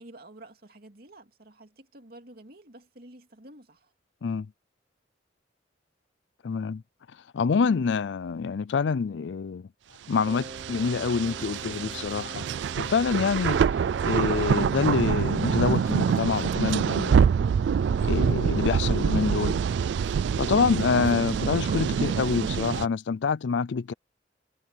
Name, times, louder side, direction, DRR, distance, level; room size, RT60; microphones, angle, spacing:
voice 1, 0.0-3.9, right 1 dB, 55° right, 2.6 m, -49 dB
voice 2, 6.4-6.8 7.3-9.7 10.1-12.5 12.8-13.6 14.0-17.2 18.0-19.6 20.4-23.9, left 5 dB, 80° left, 0.4 m, -26 dB
Wind instrument woodwind instrument, 10.2-17.5, right 1 dB, 40° right, 4.5 m, -45 dB
sound 1, 10.2-22.9, right 7 dB, 75° right, 0.3 m, -25 dB
head